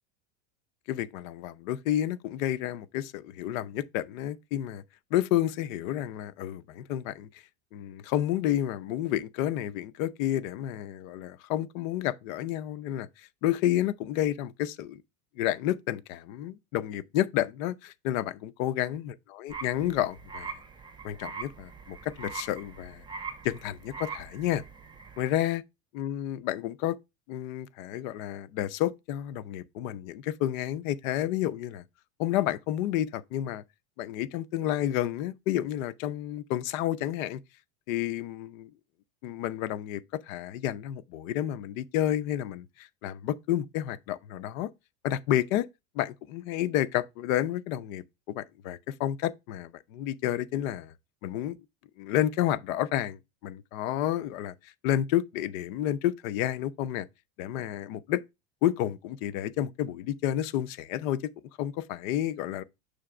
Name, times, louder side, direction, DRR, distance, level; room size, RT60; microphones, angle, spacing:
voice 1, 0.9-4.8 5.1-7.4 7.7-13.1 13.4-15.0 15.4-20.5 21.0-23.0 23.4-24.6 25.2-25.6 25.9-27.0 27.3-31.8 32.2-33.6 34.0-37.4 37.9-38.7 39.2-40.0 40.3-44.7 45.0-45.7 45.9-50.9 51.2-51.6 52.0-54.5 54.8-57.1 57.4-58.2 58.6-61.2 61.6-62.6, left 12 dB, 70° left, 0.7 m, -30 dB
sound 1, 19.5-25.3, right 5 dB, 10° right, 1.6 m, -42 dB
6.5 x 3.2 x 4.8 m
supercardioid pair, 140°, 41 cm